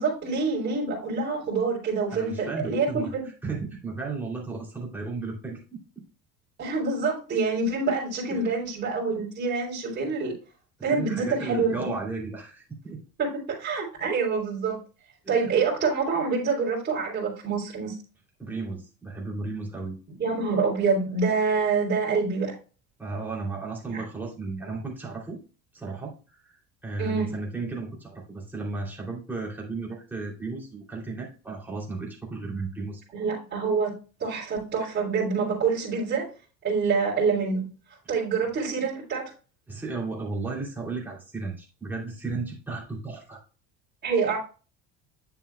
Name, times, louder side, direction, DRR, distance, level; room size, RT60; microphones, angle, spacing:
voice 1, 0.0-3.3 6.6-10.3 10.8-11.9 13.2-14.8 15.3-17.9 20.2-22.5 23.9-24.0 27.0-27.4 33.1-33.9 34.2-36.3 36.6-37.6 38.1-39.2 44.0-44.4, right 4 dB, 30° right, -8 dB, 3.2 m, -26 dB
voice 2, 2.1-6.0 8.3-8.5 10.9-13.0 15.2-15.5 18.4-20.0 23.0-25.4 25.7-26.5 26.8-33.0 39.7-43.4, right 3 dB, 5° right, -4 dB, 2.8 m, -34 dB
9.1 x 6.9 x 2.2 m, 0.36 s
cardioid pair, 130°, 32 cm